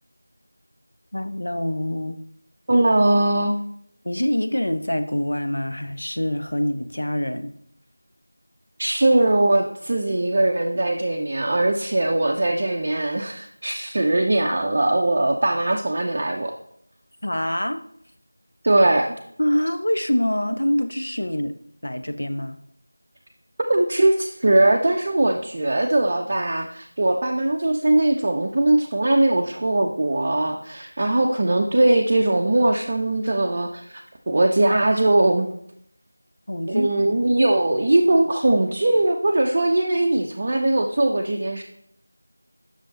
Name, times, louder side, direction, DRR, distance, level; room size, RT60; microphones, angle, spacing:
voice 1, 1.1-2.2 4.0-7.5 17.2-17.8 19.4-21.6 21.8-22.6 36.5-36.9, left 1 dB, 65° left, 9 dB, 0.9 m, -25 dB
voice 2, 2.7-3.6 8.8-16.6 18.6-19.1 23.7-35.5 36.7-41.6, right 2 dB, 30° right, 0 dB, 0.6 m, -20 dB
7.6 x 6.4 x 4.0 m, 0.70 s
figure-of-eight pair, 175°, 0 cm